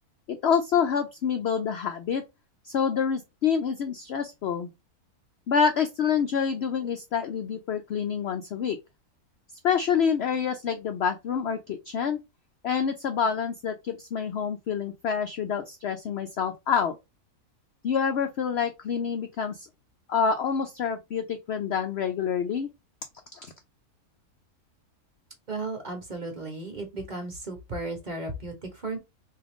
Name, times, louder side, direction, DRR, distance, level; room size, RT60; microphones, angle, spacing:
voice 1, 0.3-2.2 2.6-4.7 5.5-8.8 9.6-12.2 12.6-17.0 17.8-19.7 20.1-22.7 23.3-23.5, left 7 dB, 65° left, 0.6 m, -27 dB
voice 2, 25.5-29.0, right 2 dB, 35° right, 1.0 m, -35 dB
3.5 x 2.7 x 3.5 m
omnidirectional pair, 1.6 m